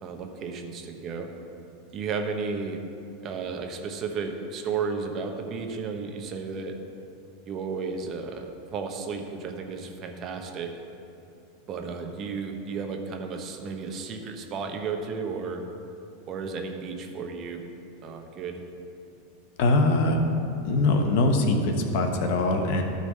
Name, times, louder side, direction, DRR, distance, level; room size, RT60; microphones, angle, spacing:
voice 1, 0.0-1.3 1.9-2.8 3.2-6.7 7.4-8.5 8.7-10.7 11.7-15.6 16.3-17.6 18.0-18.6, right 5 dB, 40° right, 4 dB, 1.0 m, -33 dB
voice 2, 19.6-20.2 20.6-22.8, left 2 dB, 60° left, 4 dB, 1.1 m, -22 dB
12.0 x 4.0 x 6.5 m, 2.7 s
hypercardioid pair, 95°, 0 cm